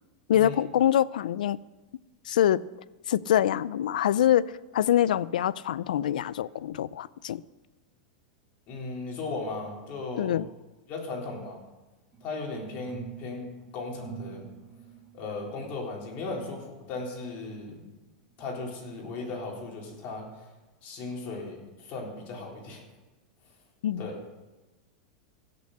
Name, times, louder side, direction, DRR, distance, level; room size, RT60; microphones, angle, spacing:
voice 1, 0.3-1.6 2.3-2.6 3.1-7.4 10.2-10.5 23.8-24.1, left 11 dB, 85° left, 0.4 m, -25 dB
voice 2, 8.7-10.4 10.9-11.6 12.2-13.5 13.7-14.5 15.1-17.9 18.4-20.5 20.8-22.8 24.0-24.2, left 3 dB, 40° left, 3.8 m, -37 dB
sound 1, 12.1-17.9 18.4-19.5 20.0-20.1, right 8 dB, 20° right, 1.0 m, -48 dB
16.5 x 6.8 x 6.6 m
supercardioid pair, 140°, 4 cm